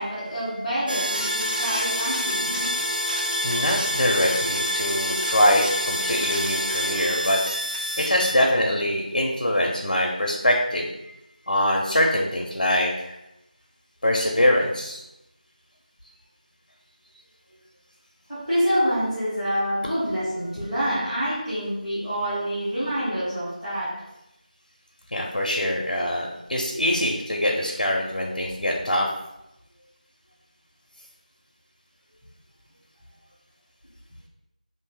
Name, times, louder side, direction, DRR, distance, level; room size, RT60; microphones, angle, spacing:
voice 1, 0.0-2.7 18.3-24.1, equal, ahead, -15 dB, 0.7 m, -27 dB
sound 1, 0.9-8.3, equal, 85° right, 0.6 m, -27 dB
voice 2, 3.4-7.4 8.0-10.9 11.5-13.2 14.0-15.0 25.1-29.1, left 1 dB, 80° left, -1 dB, 0.6 m, -23 dB
2.7 x 2.6 x 3.8 m, 0.89 s
figure-of-eight pair, 175°, 5 cm